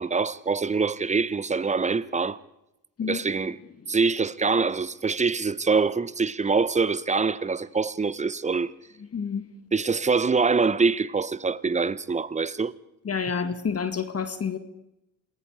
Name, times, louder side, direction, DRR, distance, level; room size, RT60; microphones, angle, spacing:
voice 1, 0.0-2.4 3.0-3.6 3.9-8.7 9.7-12.7, right 4 dB, 15° right, 1.0 m, -24 dB
voice 2, 13.0-14.6, left 6 dB, 35° left, 1.9 m, -28 dB
27.5 x 19.5 x 4.9 m
hypercardioid pair, 65°, 41 cm